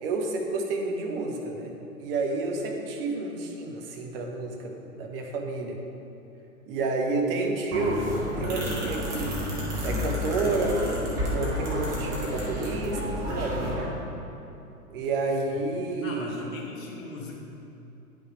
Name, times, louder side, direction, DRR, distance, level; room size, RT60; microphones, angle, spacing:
voice 1, 0.0-5.8 6.7-8.1 8.4-9.4 9.8-10.8 11.2-13.8 14.9-16.3, right 3 dB, 40° right, 1 dB, 0.9 m, -30 dB
sound 1, 7.7-13.8, left 1 dB, 10° right, 0.4 m, -30 dB
voice 2, 16.0-17.4, left 3 dB, 60° left, -2 dB, 1.5 m, -40 dB
9.4 x 5.1 x 3.2 m, 2.8 s
figure-of-eight pair, 105°, 45 cm